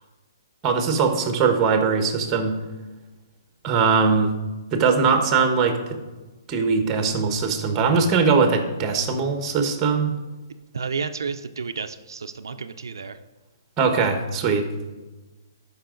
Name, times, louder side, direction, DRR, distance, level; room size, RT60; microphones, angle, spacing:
voice 1, 0.6-2.6 3.6-4.3 4.7-6.0 6.5-10.1 13.8-14.6, right 5 dB, 20° right, 6 dB, 1.2 m, -21 dB
voice 2, 10.7-13.2, right 5 dB, 90° right, 8 dB, 0.5 m, -31 dB
13.0 x 5.4 x 3.9 m, 1.2 s
hypercardioid pair, 155°, 2 cm